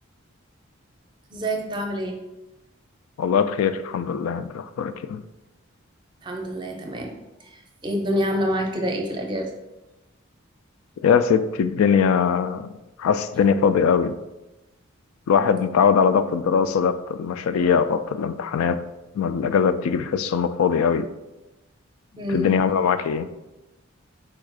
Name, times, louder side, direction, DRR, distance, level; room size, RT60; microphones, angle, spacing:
voice 1, 1.3-2.2 6.2-9.5 22.2-22.5, equal, 20° right, 2 dB, 0.5 m, -27 dB
voice 2, 3.2-5.2 11.0-12.7 13.0-14.2 15.3-18.8 19.2-21.1 22.3-23.3, left 6 dB, 85° left, 12 dB, 0.3 m, -21 dB
4.5 x 2.4 x 4.7 m, 1.0 s
head